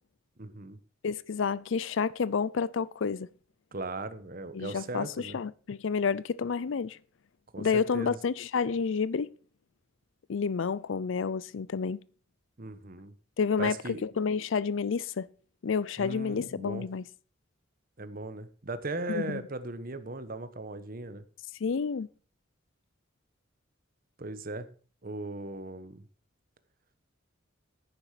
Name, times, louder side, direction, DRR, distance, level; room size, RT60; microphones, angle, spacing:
voice 1, 0.4-0.8 3.7-5.4 7.5-7.7 7.9-8.2 12.6-13.1 13.6-14.1 16.0-16.9 18.0-21.2 24.2-24.7 25.0-26.0, right 2 dB, 45° right, 1.2 m, -38 dB
voice 2, 1.0-3.3 4.5-7.0 7.6-9.3 10.3-12.0 13.4-13.8 14.0-15.3 15.6-17.0 19.1-19.4 21.6-22.1, left 5 dB, 70° left, 0.5 m, -29 dB
10.0 x 9.7 x 4.9 m
head